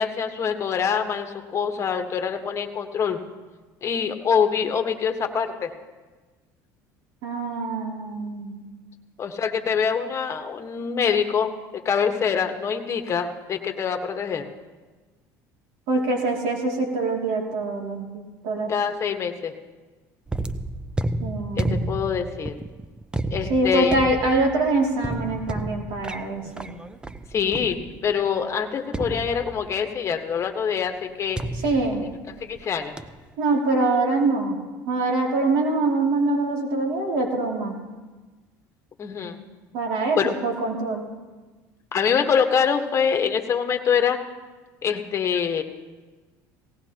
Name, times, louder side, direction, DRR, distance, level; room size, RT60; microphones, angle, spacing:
voice 1, 0.0-3.2 3.8-5.7 9.2-11.5 11.8-14.5 18.7-19.5 21.6-22.6 23.3-24.0 27.3-27.8 28.0-31.4 32.5-32.9 39.0-39.4 40.2-40.3 41.9-44.2 44.8-45.6, left 7 dB, 35° left, 6 dB, 1.3 m, -24 dB
voice 2, 7.2-8.6 15.9-18.7 21.2-21.8 23.5-26.7 31.6-32.0 33.4-34.6 34.9-37.8 39.7-41.1, right 2 dB, 75° right, 0 dB, 2.6 m, -24 dB
sound 1, 20.3-28.2 28.9-29.9 31.4-32.6 33.0-33.3, right 2 dB, 10° right, 0.6 m, -31 dB
18.5 x 17.0 x 2.9 m, 1.3 s
supercardioid pair, 105°, 8 cm